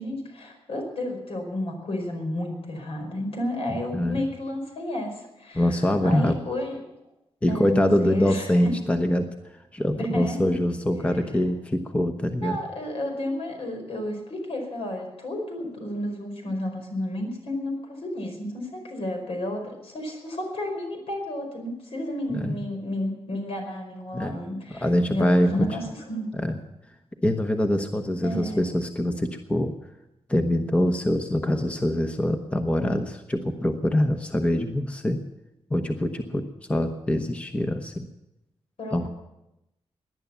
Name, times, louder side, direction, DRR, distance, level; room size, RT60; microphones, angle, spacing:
voice 1, 0.0-5.8 6.0-6.8 7.5-8.7 10.0-10.6 12.4-26.3 28.2-28.6 38.8-39.1, left 1 dB, 70° left, 2 dB, 5.0 m, -32 dB
voice 2, 3.7-4.2 5.5-6.4 7.4-9.3 9.7-12.6 22.3-22.6 24.1-24.3 24.7-25.7 26.3-26.6 27.2-29.7 30.3-35.2 35.7-36.4 36.7-38.1 38.9-39.1, left 1 dB, 10° left, 5 dB, 1.0 m, -24 dB
18.5 x 10.5 x 7.0 m, 0.91 s
wide cardioid pair, 155°, 10 cm